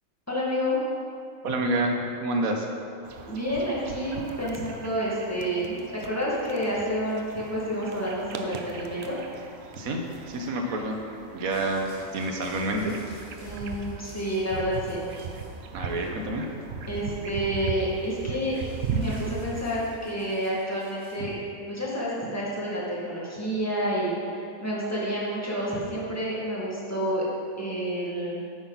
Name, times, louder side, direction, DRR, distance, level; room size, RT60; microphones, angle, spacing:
voice 1, 0.3-0.8 3.2-9.1 13.4-15.1 16.9-18.6 18.9-27.2 27.6-28.4, equal, 10° left, -6 dB, 2.1 m, -29 dB
voice 2, 1.4-2.7 9.8-10.0 10.3-11.0 11.3-11.8 12.1-12.9 15.7-16.4, right 2 dB, 85° right, 2 dB, 1.5 m, -28 dB
sound 1, 3.0-20.0, right 5 dB, 55° right, 0.8 m, -38 dB
sound 2, 11.5-15.6 15.9-16.5 18.5-21.2 22.1-22.2, equal, 80° left, 3.0 m, -51 dB
10.0 x 8.6 x 4.1 m, 2.4 s
omnidirectional pair, 1.4 m